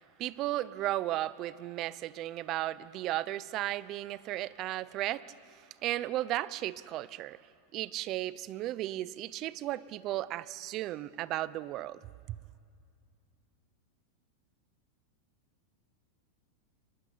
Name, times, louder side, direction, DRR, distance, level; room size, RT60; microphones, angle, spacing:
voice 1, 0.2-5.2 5.8-7.4 7.7-12.0 12.3-12.4, right 15 dB, 40° right, 18 dB, 0.7 m, -35 dB
24.0 x 20.0 x 8.6 m, 2.3 s
supercardioid pair, 135°, 0 cm